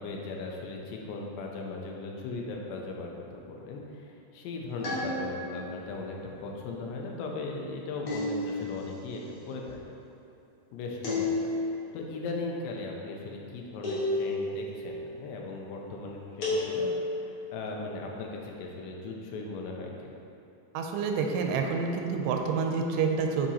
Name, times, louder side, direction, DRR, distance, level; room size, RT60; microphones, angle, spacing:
voice 1, 0.0-9.8 10.7-20.2, left 3 dB, 90° left, 0 dB, 2.9 m, -38 dB
sound 1, 4.8-5.7 8.1-8.9 11.0-11.9 13.8-14.7 16.4-17.3, left 2 dB, 55° left, 1.5 m, -31 dB
voice 2, 20.7-23.5, right 5 dB, 90° right, 3 dB, 2.7 m, -28 dB
8.8 x 5.5 x 2.9 m, 2.7 s
omnidirectional pair, 4.7 m